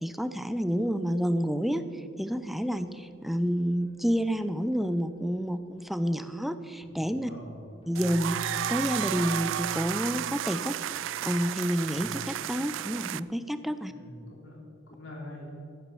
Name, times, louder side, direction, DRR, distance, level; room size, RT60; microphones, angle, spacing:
voice 1, 0.0-7.3 7.9-8.4 8.7-10.8 11.2-13.9, equal, ahead, 11 dB, 0.5 m, -29 dB
sound 1, 2.3-4.9 5.3-6.4 6.8-12.2, left 1 dB, 30° left, 2.8 m, -47 dB
voice 2, 7.3-7.6 13.8-14.6 14.9-15.5, left 1 dB, 80° left, -1 dB, 3.6 m, -44 dB
sound 2, 7.9-13.2, right 11 dB, 75° right, 0.3 m, -33 dB
13.0 x 9.8 x 7.1 m, 2.5 s
head